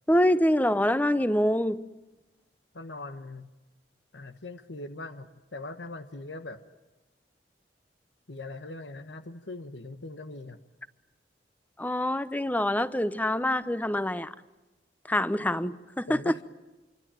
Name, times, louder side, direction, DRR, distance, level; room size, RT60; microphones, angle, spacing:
voice 1, 0.1-1.9 11.8-14.3 15.1-16.3, left 1 dB, 10° left, 0.9 m, -25 dB
voice 2, 2.7-3.5 4.1-6.6 8.3-10.6 16.1-16.4, left 2 dB, 90° left, 1.3 m, -41 dB
27.0 x 24.0 x 9.1 m
head